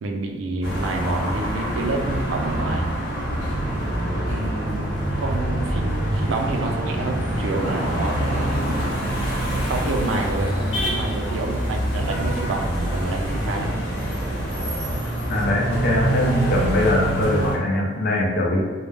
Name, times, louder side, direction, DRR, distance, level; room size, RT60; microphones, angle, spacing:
voice 1, 0.0-2.9 4.3-9.0 9.4-10.6 10.8-13.8, right 2 dB, 85° right, 2 dB, 0.4 m, -28 dB
sound 1, 0.6-17.6, right 1 dB, 80° left, 1.1 m, -25 dB
voice 2, 15.3-18.6, left 1 dB, 55° left, -2 dB, 0.4 m, -21 dB
2.2 x 2.1 x 3.2 m, 1.5 s
head